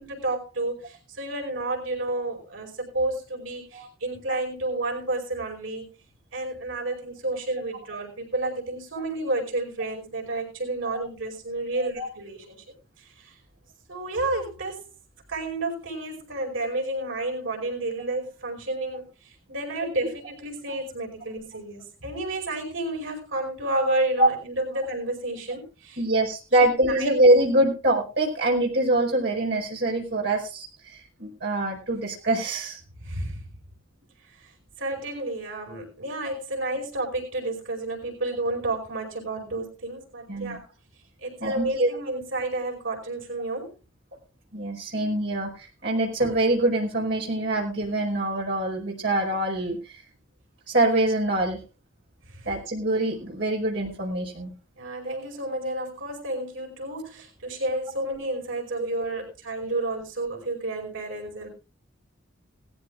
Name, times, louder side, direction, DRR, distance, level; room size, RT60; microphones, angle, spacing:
voice 1, 0.0-5.9 6.3-12.6 13.0-13.3 13.9-14.9 15.3-26.0 26.6-27.1 33.0-33.4 34.4-34.5 34.8-40.6 41.2-43.7 52.3-52.5 54.8-61.5, right 2 dB, 85° right, 5.1 m, -31 dB
voice 2, 26.0-30.7 31.2-32.8 40.3-40.6 41.4-41.9 44.5-45.5 45.8-49.8 50.7-51.6 52.4-54.5 55.0-55.1 58.8-58.9, right 1 dB, 60° right, 4.8 m, -24 dB
19.5 x 14.5 x 2.5 m
head